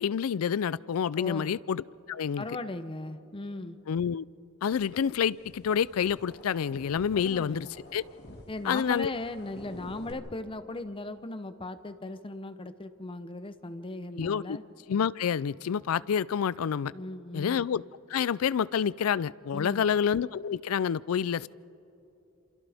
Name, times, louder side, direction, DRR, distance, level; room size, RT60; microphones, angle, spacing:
voice 1, 0.0-2.5 3.9-4.2 4.6-7.7 7.9-8.0 8.6-9.1 14.2-14.6 14.9-16.9 17.3-17.8 18.1-21.5, left 7 dB, 85° left, 21 dB, 0.4 m, -28 dB
voice 2, 1.2-1.5 2.4-3.8 7.1-7.7 8.5-14.6 16.9-17.7 19.5-19.9, left 2 dB, 25° left, 11 dB, 0.7 m, -38 dB
sound 1, 4.7-10.1, left 1 dB, 50° left, 2.1 m, -50 dB
29.0 x 27.5 x 3.5 m, 2.9 s
head